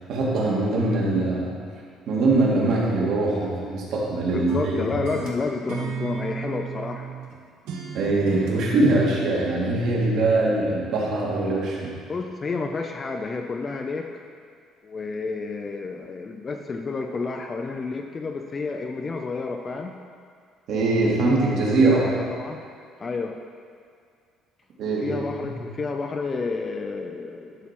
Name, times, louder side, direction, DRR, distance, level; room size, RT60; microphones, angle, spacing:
voice 1, 0.1-1.6 2.1-4.8 7.9-12.0 20.7-22.0 24.8-25.6, right 2 dB, 60° right, -4 dB, 2.1 m, -22 dB
sound 1, 2.7-4.2 4.5-7.3 7.7-9.1, right 6 dB, 85° right, 1.3 m, -34 dB
voice 2, 4.3-7.1 12.1-14.2 14.8-20.0 21.8-22.6 23.0-23.3 25.0-27.7, left 4 dB, 25° left, 4 dB, 0.4 m, -30 dB
11.5 x 4.3 x 5.9 m, 2.2 s
cardioid pair, 155°, 0 cm